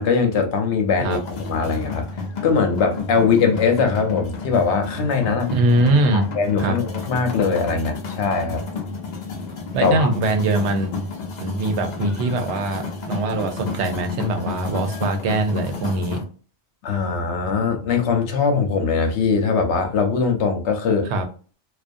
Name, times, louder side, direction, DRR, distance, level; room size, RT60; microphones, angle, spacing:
voice 1, 0.0-2.1 2.4-5.5 6.1-8.6 9.8-10.1 16.8-21.1, left 5 dB, 75° left, 0.9 m, -21 dB
sound 1, 1.1-16.2, left 4 dB, 50° left, 0.6 m, -31 dB
voice 2, 5.5-6.3 6.6-6.8 9.7-10.9 11.4-16.2 21.1-21.2, right 2 dB, 80° right, 0.9 m, -22 dB
2.4 x 2.3 x 2.5 m
omnidirectional pair, 1.2 m